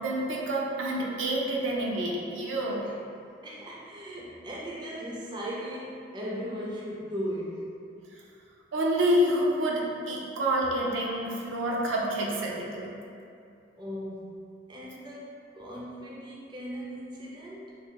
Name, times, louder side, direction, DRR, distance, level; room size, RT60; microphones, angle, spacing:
voice 1, 0.0-2.8 8.7-12.9, right 1 dB, 90° right, -2 dB, 0.5 m, -28 dB
voice 2, 3.4-7.7 13.8-14.4 14.7-17.8, equal, 25° right, -5 dB, 0.3 m, -37 dB
3.2 x 2.2 x 2.8 m, 2.5 s
head